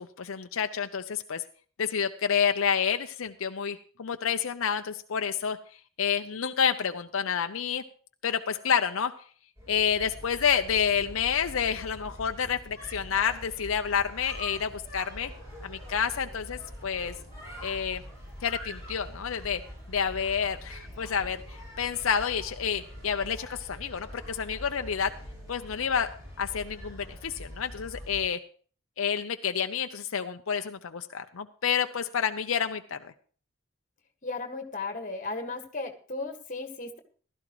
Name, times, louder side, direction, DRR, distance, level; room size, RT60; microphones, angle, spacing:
voice 1, 0.0-1.4 1.8-5.6 6.0-7.8 8.2-9.1 9.7-15.3 15.6-17.1 17.6-18.0 18.4-19.6 19.9-25.1 25.5-26.1 26.4-28.4 29.0-33.1, left 7 dB, 80° left, 7 dB, 0.6 m, -29 dB
sound 1, 9.6-28.3, equal, 15° right, 7.9 m, -44 dB
voice 2, 34.2-37.0, left 3 dB, 35° left, 6 dB, 1.6 m, -35 dB
15.5 x 13.0 x 3.0 m, 0.43 s
head